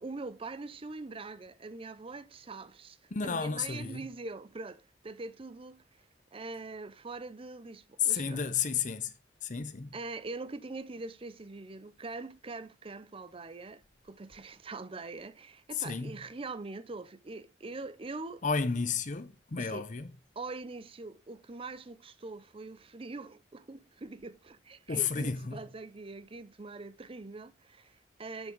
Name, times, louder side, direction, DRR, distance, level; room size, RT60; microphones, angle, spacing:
voice 1, 0.0-3.0 3.2-5.8 6.3-8.4 9.9-18.4 19.6-19.8 20.4-28.5, right 3 dB, 30° right, 0.6 m, -43 dB
voice 2, 3.1-4.0 8.0-9.1 9.4-9.9 15.7-16.2 18.4-20.1 24.9-25.6, left 6 dB, 45° left, 0.7 m, -32 dB
7.3 x 6.8 x 4.6 m
head